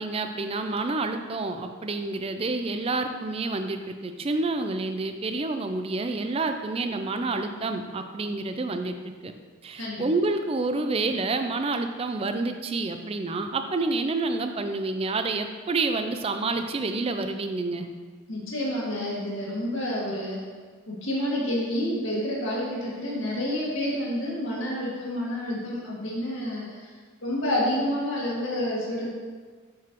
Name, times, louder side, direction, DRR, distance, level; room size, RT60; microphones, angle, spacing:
voice 1, 0.0-9.0 9.2-9.3 9.6-17.9, right 3 dB, 30° right, 7 dB, 0.4 m, -28 dB
voice 2, 18.3-20.4 20.9-26.9 27.2-29.1, left 1 dB, 65° left, -4 dB, 1.8 m, -29 dB
7.4 x 6.0 x 3.0 m, 1.5 s
head